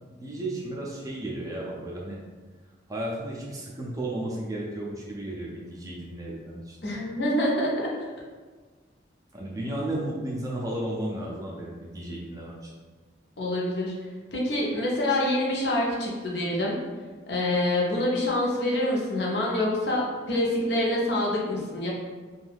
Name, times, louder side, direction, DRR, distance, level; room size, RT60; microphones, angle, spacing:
voice 1, 0.1-2.2 2.9-6.8 9.3-12.7, right 1 dB, 20° right, -3 dB, 0.4 m, -34 dB
voice 2, 6.8-7.7 13.4-13.9 14.3-16.8 17.3-21.9, left 1 dB, 60° left, -4 dB, 0.7 m, -26 dB
2.6 x 2.3 x 3.4 m, 1.4 s
head